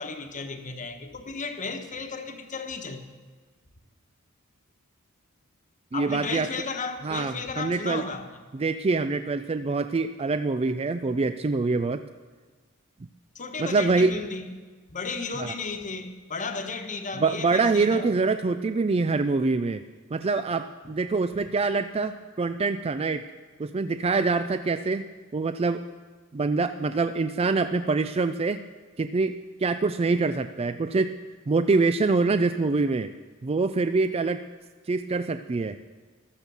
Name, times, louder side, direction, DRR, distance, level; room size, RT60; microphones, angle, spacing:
voice 1, 0.0-3.0 5.9-8.4 13.3-14.6 14.9-18.1, left 4 dB, 35° left, 1.3 m, -34 dB
voice 2, 5.9-6.5 7.0-8.0 8.5-12.0 13.6-14.1 15.4-15.5 17.2-19.8 20.1-23.2 23.6-25.1 25.3-25.9 26.3-28.6 29.0-31.1 31.5-33.1 33.4-34.4 34.9-35.8, right 3 dB, 30° right, 0.4 m, -25 dB
14.0 x 12.5 x 7.0 m
head